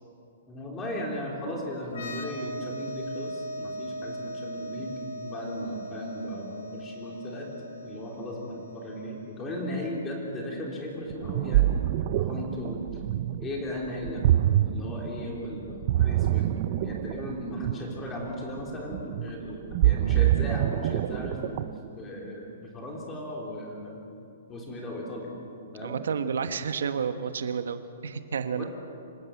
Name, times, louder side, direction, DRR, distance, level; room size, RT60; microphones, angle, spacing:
voice 1, 0.5-7.5 7.8-12.8 13.4-24.0 24.5-25.3 25.7-26.0 28.6-28.7, left 1 dB, 15° left, -1 dB, 3.5 m, -36 dB
sound 1, 1.9-9.4, equal, 70° left, 4.5 m, -39 dB
Ocean, 11.1-21.9, right 13 dB, 35° right, 0.5 m, -26 dB
voice 2, 25.8-28.6, right 6 dB, 85° right, 9 dB, 1.2 m, -30 dB
26.5 x 14.5 x 9.1 m, 2.6 s
hypercardioid pair, 175°, 0 cm